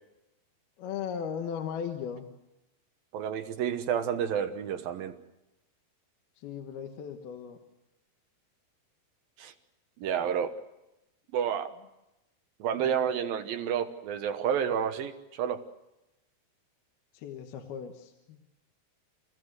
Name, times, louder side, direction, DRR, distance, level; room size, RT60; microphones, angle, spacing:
voice 1, 0.8-2.3 6.4-7.6 17.1-18.4, left 7 dB, 75° left, 4 dB, 3.2 m, -37 dB
voice 2, 3.1-5.2 9.4-9.5 10.0-10.5 11.3-11.7 12.6-15.6, right 8 dB, 70° right, 8 dB, 2.8 m, -30 dB
29.0 x 15.5 x 8.0 m, 0.94 s
omnidirectional pair, 4.6 m